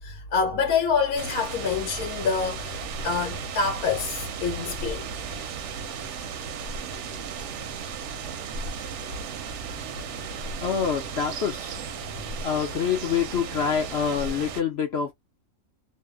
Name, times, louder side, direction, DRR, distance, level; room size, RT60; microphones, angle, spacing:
voice 1, 0.0-5.0, left 5 dB, 80° left, 1.1 m, -26 dB
sound 1, 1.2-14.6, right 5 dB, 65° right, 0.8 m, -35 dB
voice 2, 10.6-11.8 12.4-15.1, left 7 dB, 60° left, 0.7 m, -26 dB
2.7 x 2.0 x 2.3 m
omnidirectional pair, 1.5 m